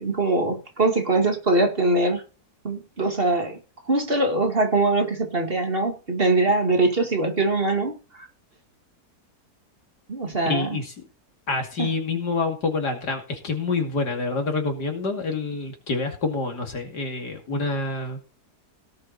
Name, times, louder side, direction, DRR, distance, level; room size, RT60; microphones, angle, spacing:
voice 1, 0.0-2.2 2.6-3.6 3.9-8.3 10.1-10.8 11.8-11.9, right 2 dB, 35° right, 4 dB, 2.4 m, -22 dB
voice 2, 10.4-10.9 11.5-18.2, left 3 dB, 90° left, 4 dB, 3.1 m, -27 dB
17.5 x 6.7 x 4.3 m, 0.34 s
omnidirectional pair, 1.7 m